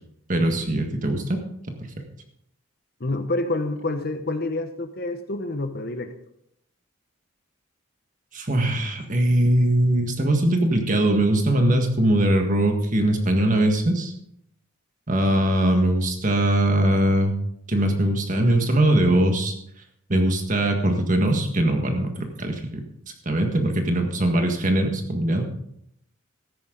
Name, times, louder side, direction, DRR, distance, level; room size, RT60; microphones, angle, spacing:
voice 1, 0.3-1.4 8.3-14.1 15.1-17.4 17.7-19.5 20.1-22.6 23.2-25.4, right 1 dB, 35° right, 4 dB, 1.7 m, -21 dB
voice 2, 3.0-6.1, left 2 dB, 45° left, 9 dB, 0.9 m, -28 dB
14.0 x 10.5 x 3.9 m, 0.73 s
head